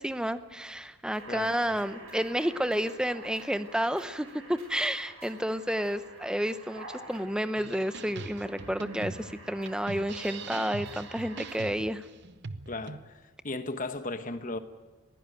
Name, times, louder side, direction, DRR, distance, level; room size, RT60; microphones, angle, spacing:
voice 1, 0.0-12.0, equal, 5° right, 11 dB, 0.6 m, -31 dB
sound 1, 1.1-11.6, right 2 dB, 75° right, 6.2 m, -48 dB
sound 2, 7.6-13.0, right 4 dB, 50° right, 0.8 m, -41 dB
voice 2, 12.7-13.0 13.4-14.6, left 2 dB, 35° left, 9 dB, 1.1 m, -35 dB
21.0 x 16.5 x 9.2 m, 1.2 s
head